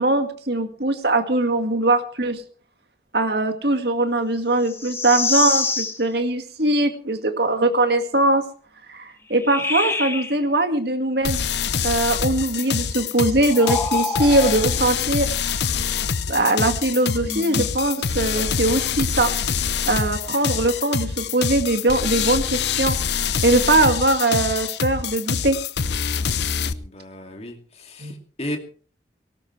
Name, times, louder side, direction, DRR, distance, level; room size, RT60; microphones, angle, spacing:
voice 1, 0.0-2.4 3.1-8.4 8.9-11.4 11.8-15.3 16.3-19.3 19.9-23.0 23.4-25.6 28.0-28.1, right 2 dB, 65° right, 7 dB, 2.0 m, -21 dB
sound 1, 4.6-6.0 9.3-10.4 13.5-14.7 17.2-17.6, left 3 dB, 15° left, 1.9 m, -25 dB
sound 2, 11.2-26.7, left 6 dB, 70° left, 0.8 m, -25 dB
voice 2, 26.6-28.1 28.4-28.6, left 1 dB, 35° left, 3 dB, 2.5 m, -34 dB
18.5 x 18.0 x 3.3 m, 0.40 s
head